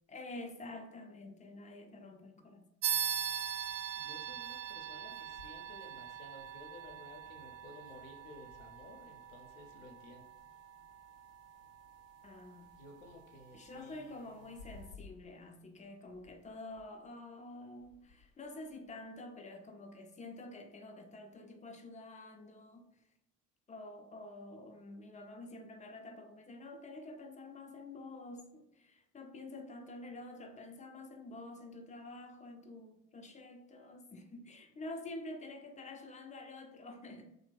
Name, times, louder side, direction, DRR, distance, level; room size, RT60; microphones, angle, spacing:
voice 1, 0.1-2.7 5.0-5.2 12.2-12.7 13.5-22.9 23.7-37.3, left 2 dB, 20° left, 0.4 m, -48 dB
sound 1, 2.8-12.8, right 9 dB, 40° right, 0.4 m, -41 dB
voice 2, 4.0-10.2 12.7-14.6 15.4-15.5, left 2 dB, 80° left, 0.6 m, -55 dB
2.8 x 2.0 x 3.4 m
figure-of-eight pair, 55°, 39 cm